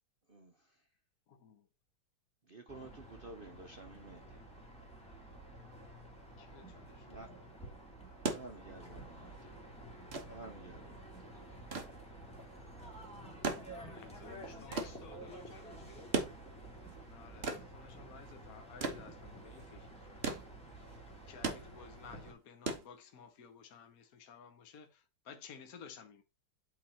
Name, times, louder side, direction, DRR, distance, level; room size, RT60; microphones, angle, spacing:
voice 1, 1.3-1.6 6.4-7.1 13.7-14.7 17.1-20.5 21.3-26.2, left 6 dB, 55° left, 1.1 m, -55 dB
voice 2, 2.5-4.2 7.1-7.3 8.3-9.3 10.3-11.1 11.9-12.0, right 2 dB, 75° right, 0.5 m, -51 dB
sound 1, 2.7-22.3, right 1 dB, 5° left, 2.4 m, -51 dB
sound 2, 8.0-23.5 24.7-24.9, right 4 dB, 35° right, 1.2 m, -41 dB
voice 3, 14.2-16.2, left 2 dB, 80° left, 2.5 m, -55 dB
8.4 x 4.0 x 4.2 m
omnidirectional pair, 2.2 m